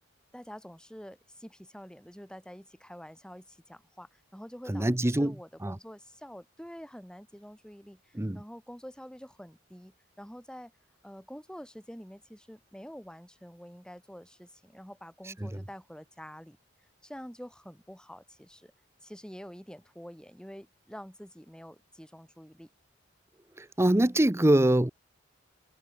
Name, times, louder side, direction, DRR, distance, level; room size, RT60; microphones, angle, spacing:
voice 1, 0.3-10.7 11.0-16.6 17.0-18.7 19.0-22.7, equal, 5° left, 7.8 m, -47 dB
voice 2, 4.7-5.3 5.6-5.8 8.2-8.4 15.4-15.5 23.6-24.9, right 1 dB, 15° right, 0.7 m, -24 dB
head